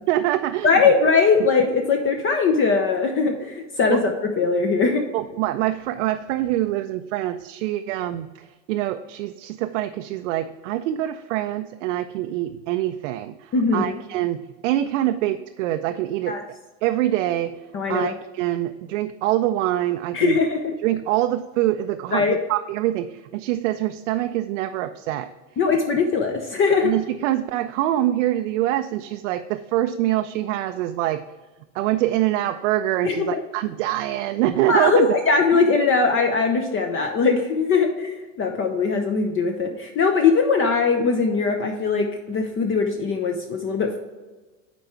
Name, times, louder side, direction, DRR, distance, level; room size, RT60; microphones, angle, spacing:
voice 1, 0.1-0.7 3.9-4.0 5.1-16.4 16.8-17.6 17.9-20.4 20.8-25.3 26.8-31.2 31.7-35.1 35.5-35.6, right 14 dB, 75° right, 7 dB, 0.5 m, -24 dB
voice 2, 0.6-5.0 13.5-13.9 16.3-16.4 17.7-18.1 20.1-20.7 22.1-22.3 25.6-26.9 33.0-33.4 34.7-44.0, left 4 dB, 35° left, 4 dB, 0.8 m, -21 dB
8.3 x 4.5 x 4.5 m, 1.2 s
hypercardioid pair, 105°, 37 cm